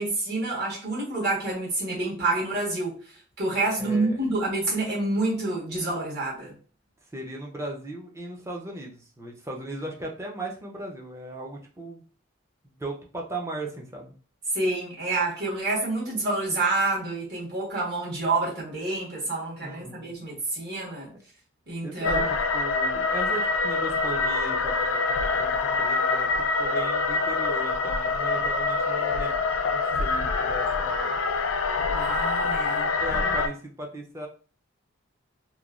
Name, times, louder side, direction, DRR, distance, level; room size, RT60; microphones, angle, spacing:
voice 1, 0.0-6.5 14.5-21.1 21.7-22.3 31.9-33.3, right 2 dB, 50° right, -6 dB, 1.4 m, -28 dB
voice 2, 3.8-4.3 7.1-12.0 12.6-14.2 19.6-20.1 21.8-22.2 22.5-26.3 26.6-29.3 29.6-31.2 32.4-32.5 32.8-34.3, right 1 dB, 15° right, 0 dB, 0.4 m, -37 dB
sound 1, 22.0-33.5, left 3 dB, 70° left, 0.3 m, -25 dB
2.9 x 2.2 x 2.4 m, 0.41 s
head